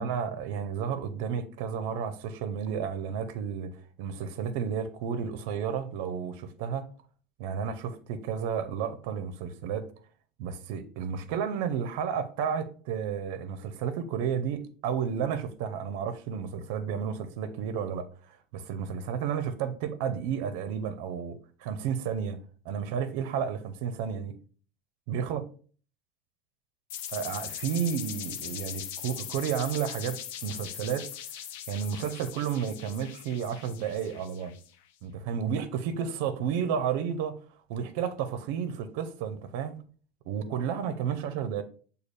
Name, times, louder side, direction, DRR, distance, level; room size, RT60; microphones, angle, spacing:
voice 1, 0.0-6.8 7.4-9.9 10.4-22.4 22.6-24.3 25.1-25.4 27.1-31.1 31.7-34.5 35.0-37.4 37.7-39.8 40.3-41.6, right 7 dB, 70° right, 0.5 m, -32 dB
sound 1, 26.9-34.7, left 10 dB, 85° left, 0.4 m, -40 dB
6.6 x 2.3 x 3.1 m
cardioid pair, 165°, 0 cm